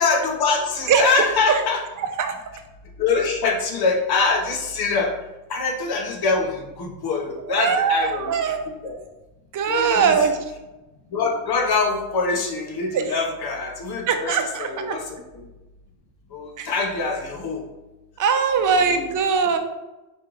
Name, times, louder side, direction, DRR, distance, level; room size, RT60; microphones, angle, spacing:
voice 1, 0.0-1.8 3.0-5.1 5.5-8.3 8.8-9.0 9.7-10.2 11.1-15.5 16.3-17.6 18.7-19.1, left 4 dB, 55° left, 2 dB, 1.1 m, -24 dB
voice 2, 2.0-2.4 7.5-9.0 9.5-10.4 12.9-13.0 14.1-15.0 16.6-16.7 18.2-19.6, right 6 dB, 40° right, 6 dB, 0.7 m, -21 dB
4.5 x 3.2 x 3.7 m, 1.0 s
cardioid pair, 95°, 46 cm